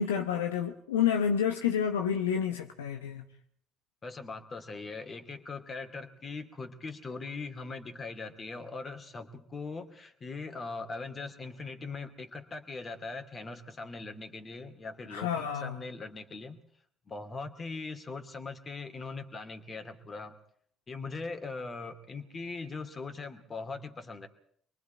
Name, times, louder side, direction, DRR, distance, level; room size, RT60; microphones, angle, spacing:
voice 1, 0.0-3.2 15.1-15.8, left 8 dB, 75° left, 0.9 m, -29 dB
voice 2, 4.0-16.6 17.1-20.3 20.9-24.3, left 3 dB, 35° left, 2.7 m, -40 dB
26.0 x 23.0 x 4.6 m
figure-of-eight pair, 50°, 0 cm